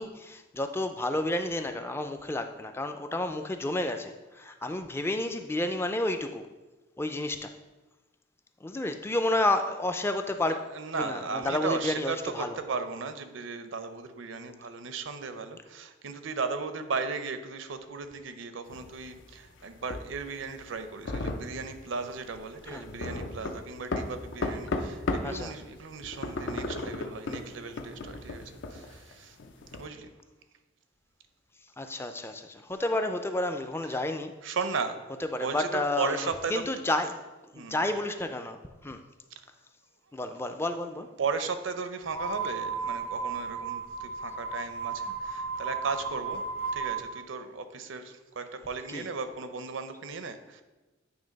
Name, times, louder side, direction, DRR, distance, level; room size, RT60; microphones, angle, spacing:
voice 1, 0.0-6.5 7.0-7.5 8.6-10.6 10.9-12.6 22.7-22.8 25.2-25.5 31.8-34.3 35.3-37.2 37.5-39.0 40.1-41.1 48.9-49.1, left 1 dB, 10° left, 7 dB, 0.4 m, -31 dB
voice 2, 10.5-28.4 28.7-29.4 29.8-30.1 33.9-34.0 34.4-35.0 35.4-36.6 37.5-37.9 41.2-46.4 46.7-50.6, right 4 dB, 75° right, 9 dB, 0.6 m, -36 dB
sound 1, 18.7-25.4 25.7-29.9, left 2 dB, 65° left, 0.6 m, -35 dB
sound 2, 42.1-47.1, right 4 dB, 30° left, 0.8 m, -34 dB
8.9 x 3.3 x 5.2 m, 1.1 s
head